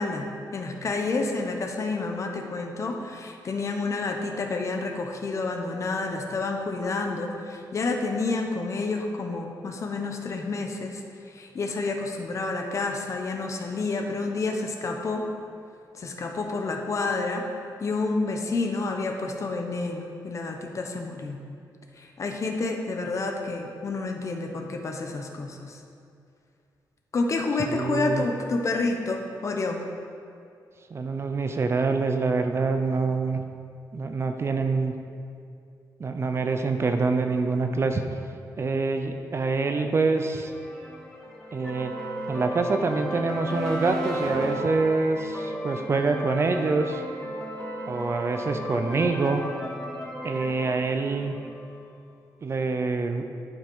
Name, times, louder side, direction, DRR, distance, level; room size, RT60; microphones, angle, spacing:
voice 1, 0.0-11.0 11.3-15.3 15.9-17.4 17.8-21.4 22.0-25.8 27.1-29.8, left 3 dB, 45° left, 3 dB, 1.0 m, -29 dB
voice 2, 27.6-28.2 30.9-33.4 33.9-34.9 36.0-38.0 38.6-40.5 41.5-41.9 42.3-47.0 47.9-49.4 50.2-51.3 52.4-53.2, right 4 dB, 35° right, 6 dB, 0.6 m, -25 dB
sound 1, 40.1-51.9, equal, 10° left, 1.4 m, -35 dB
10.5 x 5.9 x 5.5 m, 2.4 s
wide cardioid pair, 145°, 7 cm